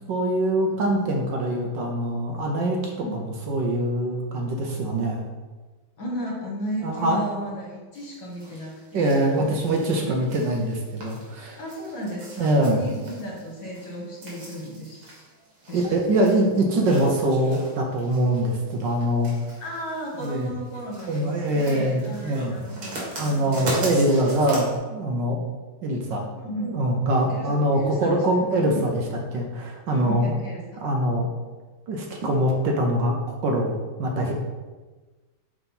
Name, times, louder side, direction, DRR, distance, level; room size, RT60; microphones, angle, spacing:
voice 1, 0.1-5.2 6.8-7.4 8.9-11.6 12.4-12.8 15.7-19.3 20.2-20.5 21.1-22.6 23.2-25.4 25.8-26.3 26.6-29.0 29.3-30.3 30.8-31.3 31.9-33.1 33.4-34.3, right 1 dB, 65° right, 1 dB, 1.4 m, -23 dB
voice 2, 6.0-9.7 10.0-10.3 11.6-15.2 15.7-15.8 19.6-23.7 26.3-26.7 27.3-28.2 28.6-28.8 29.9-30.8, equal, 60° left, -3 dB, 2.3 m, -34 dB
sound 1, 7.9-24.8, right 1 dB, 85° right, 2.7 m, -38 dB
5.8 x 4.1 x 5.6 m, 1.3 s
omnidirectional pair, 2.3 m